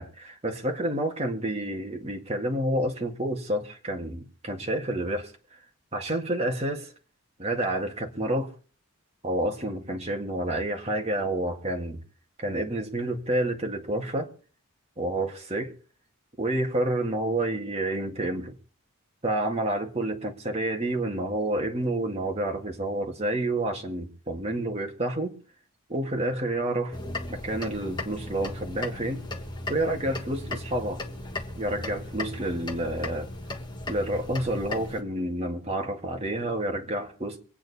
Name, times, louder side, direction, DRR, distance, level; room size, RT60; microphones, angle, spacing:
voice 1, 0.0-5.3 5.9-6.9 7.4-8.5 9.2-12.0 12.4-14.3 15.0-15.7 16.4-18.6 19.2-25.4 25.9-27.0 27.3-29.2 29.7-31.0 31.6-33.3 33.9-37.4, right 1 dB, 30° right, 2.0 m, -29 dB
sound 1, 26.9-35.0, left 2 dB, 20° left, 1.5 m, -36 dB
24.5 x 9.1 x 4.2 m
head